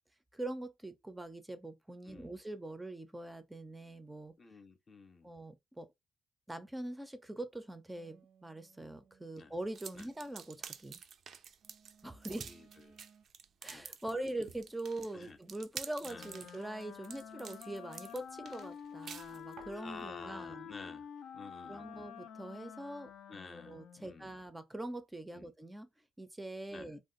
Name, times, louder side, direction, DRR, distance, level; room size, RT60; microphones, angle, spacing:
voice 1, 0.3-4.3 5.2-5.9 6.5-11.0 12.0-12.5 13.6-20.7 21.7-23.1 23.5-25.9 26.2-27.0, right 1 dB, 10° right, 0.5 m, -43 dB
voice 2, 2.1-2.4 4.4-5.3 9.4-9.5 9.9-10.1 12.3-13.0 13.7-14.5 15.1-15.4 16.1-16.3 19.7-21.1 21.3-22.1 23.3-24.4 25.3-25.5 26.7-26.9, left 4 dB, 40° left, 0.6 m, -51 dB
sound 1, 7.9-10.9 11.6-13.2, right 7 dB, 80° right, 0.8 m, -66 dB
sound 2, 9.7-19.8, right 7 dB, 60° right, 0.4 m, -49 dB
Wind instrument woodwind instrument, 16.0-24.2, left 8 dB, 80° left, 0.5 m, -49 dB
2.5 x 2.2 x 3.8 m
cardioid pair, 90°, 0 cm